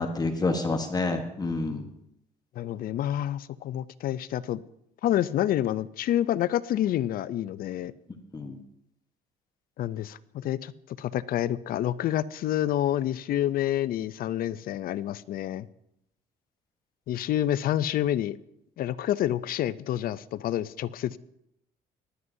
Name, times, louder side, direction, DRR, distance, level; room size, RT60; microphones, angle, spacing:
voice 1, 0.0-1.9 8.3-8.6, left 3 dB, 25° left, 6 dB, 1.2 m, -28 dB
voice 2, 2.6-4.6 5.0-7.9 9.8-10.7 11.0-15.7 17.1-18.4 18.8-21.2, left 12 dB, 60° left, 16 dB, 0.5 m, -28 dB
19.0 x 11.0 x 2.7 m, 0.78 s
cardioid pair, 110°, 17 cm